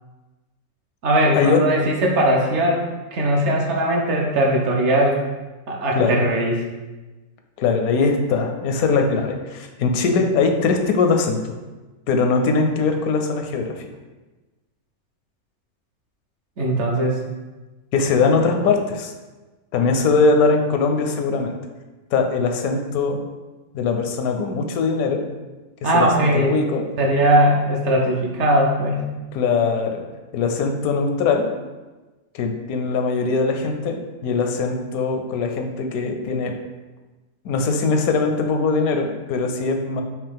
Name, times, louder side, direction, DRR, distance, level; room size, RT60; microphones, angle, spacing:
voice 1, 1.0-2.8 3.1-5.2 5.7-6.6 16.6-17.2 25.8-26.6 27.0-29.1, right 1 dB, 60° right, -1 dB, 0.9 m, -19 dB
voice 2, 7.6-11.5 12.1-13.9 17.9-19.1 19.7-21.5 22.1-23.2 23.7-25.2 25.9-26.8 29.3-30.0 30.3-31.5 32.3-36.5 37.4-40.0, left 4 dB, 80° left, 4 dB, 1.0 m, -21 dB
4.7 x 3.0 x 3.5 m, 1.2 s
omnidirectional pair, 1.5 m